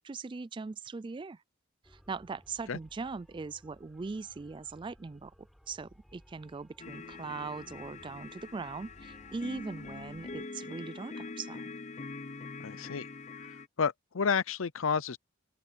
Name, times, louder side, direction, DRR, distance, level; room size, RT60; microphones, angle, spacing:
voice 1, 0.0-1.4 1.9-5.3 5.7-11.7, right 4 dB, 25° right, 0.3 m, -40 dB
sound 1, 1.8-10.5, equal, ahead, 4.0 m, -60 dB
sound 2, 6.8-13.7, left 3 dB, 35° left, 0.5 m, -44 dB
voice 2, 12.6-13.1 13.8-15.2, left 6 dB, 75° left, 0.6 m, -30 dB
open air
head